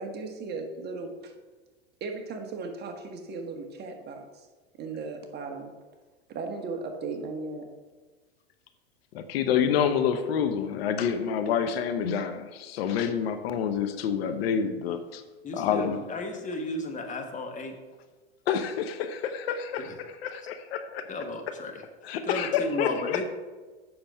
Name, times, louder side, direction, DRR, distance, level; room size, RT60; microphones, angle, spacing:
voice 1, 0.0-1.3 2.0-4.5 4.8-5.7 6.3-7.7, right 3 dB, 30° right, 3 dB, 1.3 m, -36 dB
voice 2, 9.1-15.2 15.5-16.0 18.5-19.9 20.2-21.1 22.0-23.2, left 7 dB, 70° left, 9 dB, 0.9 m, -28 dB
voice 3, 15.4-17.8 19.8-20.0 20.4-20.5 21.1-21.8 22.2-23.3, left 2 dB, 25° left, 4 dB, 1.4 m, -34 dB
7.7 x 5.9 x 5.5 m, 1.3 s
hypercardioid pair, 110°, 31 cm